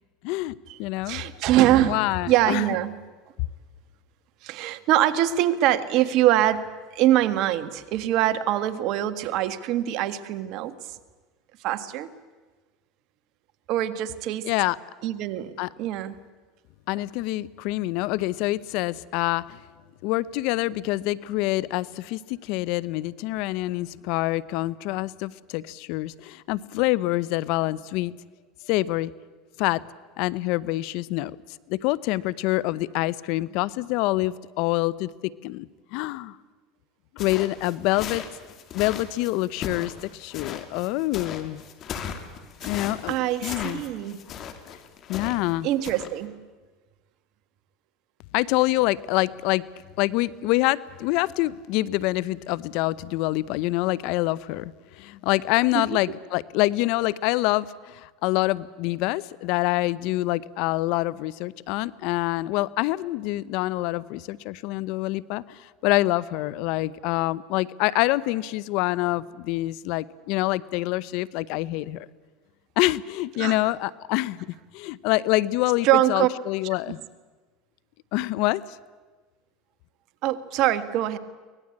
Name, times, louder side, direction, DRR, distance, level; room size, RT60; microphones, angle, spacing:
voice 1, 0.2-1.2 1.8-2.6 14.5-14.8 15.6-15.7 16.9-19.6 20.0-28.1 28.7-29.1 29.6-29.8 30.2-31.4 31.7-36.4 37.1-38.2 38.7-41.6 42.7-43.2 43.4-43.8 44.7-44.8 45.1-45.7 48.3-49.6 50.0-72.1 72.8-74.5 74.7-77.0 78.1-78.6, left 18 dB, 65° left, 20 dB, 0.7 m, -26 dB
voice 2, 1.0-2.0 2.3-3.0 4.4-10.8 11.6-12.1 13.7-14.5 15.0-15.5 15.8-16.2 42.6-42.7 43.1-44.2 45.6-46.4 55.7-56.0 73.4-73.7 75.8-76.3 80.2-81.2, right 13 dB, 60° right, 12 dB, 1.5 m, -23 dB
sound 1, 37.2-45.5 45.8-46.1, left 8 dB, 45° left, 2.5 m, -37 dB
24.0 x 19.0 x 8.6 m, 1.3 s
supercardioid pair, 105°, 0 cm